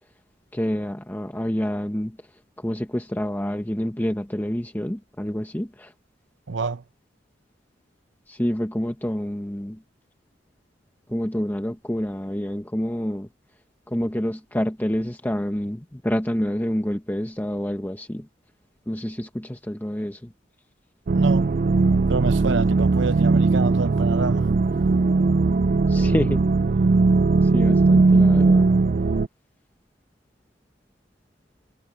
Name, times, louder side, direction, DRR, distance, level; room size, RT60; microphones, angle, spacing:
voice 1, 0.5-2.1 2.6-5.9 8.3-9.8 11.1-13.3 13.9-18.2 18.9-20.2 25.9-26.4 27.5-28.7, equal, 10° left, 1.0 m, -27 dB
voice 2, 6.5-6.8 21.1-21.6 22.1-24.5, right 4 dB, 80° right, 0.8 m, -27 dB
sound 1, 21.1-29.3, right 3 dB, 50° right, 0.4 m, -19 dB
head